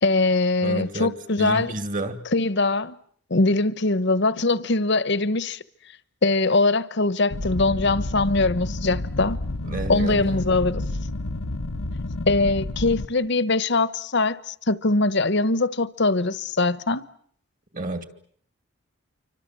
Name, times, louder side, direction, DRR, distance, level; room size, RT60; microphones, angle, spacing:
voice 1, 0.0-1.7 2.3-3.0 3.3-5.6 6.2-9.4 9.9-10.8 12.3-17.0, left 3 dB, 55° left, 1.0 m, -22 dB
voice 2, 0.6-2.3 9.7-10.3 17.7-18.0, right 2 dB, 40° right, 2.6 m, -30 dB
sound 1, 7.3-13.1, left 2 dB, 85° left, 1.1 m, -30 dB
28.0 x 25.0 x 7.7 m
head